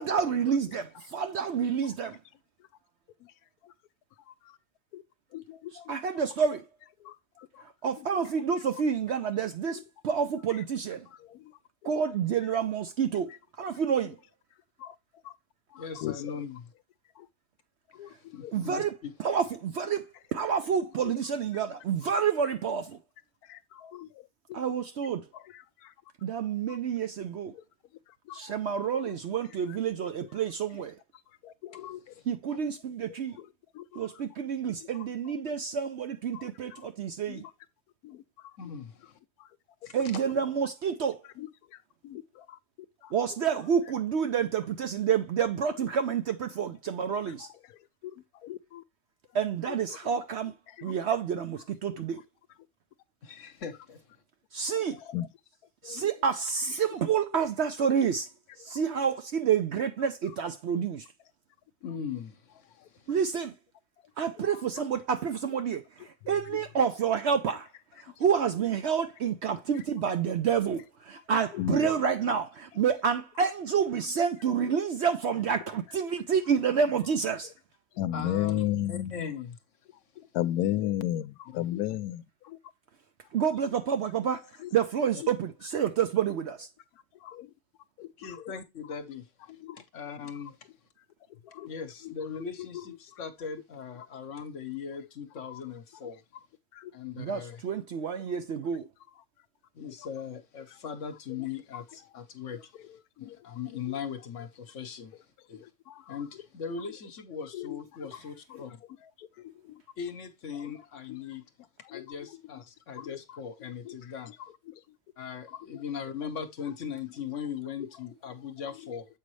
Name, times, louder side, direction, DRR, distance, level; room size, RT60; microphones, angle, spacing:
voice 1, 0.0-0.9 1.1-2.2 5.9-6.6 7.8-11.1 11.8-13.3 13.6-14.2 18.5-18.9 19.2-20.0 20.3-23.0 24.5-25.2 26.2-27.5 28.3-30.9 32.3-33.4 34.0-37.4 39.9-41.2 43.1-47.5 49.3-50.5 50.8-52.2 54.5-55.0 55.8-58.3 58.6-61.0 63.1-63.5 64.2-67.7 68.2-77.5 83.3-86.7 97.2-98.9, right 7 dB, 60° right, 0.7 m, -28 dB
voice 2, 1.8-2.2 3.6-3.7 4.3-4.6 4.9-5.0 5.3-5.9 7.0-7.6 8.0-8.1 8.6-8.7 9.7-9.8 10.5-10.6 11.1-11.6 12.5-12.6 13.3-13.4 14.8-15.0 15.2-15.3 15.7-16.4 17.2-17.3 17.9-18.5 20.8-21.1 21.5-21.6 23.4-24.6 25.3-25.9 26.7-26.8 27.5-27.6 28.1-28.6 28.9-29.2 29.4-29.8 30.2-30.3 31.3-32.0 33.3-34.2 34.8-35.3 36.3-36.9 37.3-37.5 38.0-38.6 39.4-39.5 41.2-42.6 43.0-43.1 45.8-45.9 47.3-48.8 49.7-50.0 50.7-50.9 51.9-52.0 54.7-55.3 55.8-56.1 57.3-57.4 58.7-58.8 59.8-60.1 60.7-60.9 62.8-62.9 64.5-64.9 66.4-66.6 68.1-68.2 71.5-72.0 74.0-74.2 74.6-74.8 77.9-79.3 80.2-82.6 84.6-84.7 85.2-85.3 86.9-87.5 88.0-88.5 89.5-89.8 91.3-91.7 92.0-92.1 92.6-93.2 95.5-95.6 96.7-96.9 98.8-98.9 99.2-99.3 100.7-100.8 101.3-101.5 101.7-101.8 102.7-103.4 105.5-106.2 107.5-108.1 108.5-108.6 109.0-109.8 110.5-110.8 111.1-111.2 111.8-112.6 113.0-113.4 113.8-113.9 114.3-115.0 115.5-115.8 117.8-117.9 118.6-119.0, left 13 dB, 85° left, 1.1 m, -38 dB
voice 3, 15.7-16.6 18.1-19.1 32.5-32.6 38.6-39.2 39.8-40.2 53.2-54.0 61.8-63.1 78.1-79.6 81.5-81.6 88.2-89.3 89.8-90.6 91.6-96.2 96.9-97.6 99.7-102.6 103.2-105.2 105.5-105.6 106.1-108.8 110.0-111.4 111.9-114.3 115.2-119.1, left 6 dB, 60° left, 1.2 m, -39 dB
7.5 x 5.1 x 3.1 m
omnidirectional pair, 1.6 m